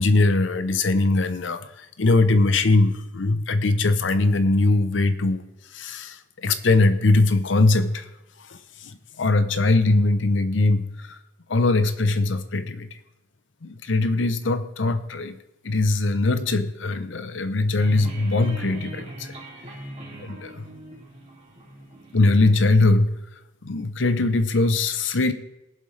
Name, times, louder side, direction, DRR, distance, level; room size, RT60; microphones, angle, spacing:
voice 1, 0.0-1.6 2.0-5.4 5.7-6.2 6.4-8.0 9.2-10.9 11.5-12.9 13.6-15.4 15.6-19.3 20.2-20.7 22.1-23.2 23.6-25.3, left 2 dB, 70° left, 11 dB, 0.8 m, -21 dB
sound 1, 17.8-22.7, right 1 dB, 30° right, 2.8 m, -41 dB
20.0 x 7.5 x 3.3 m, 0.95 s
head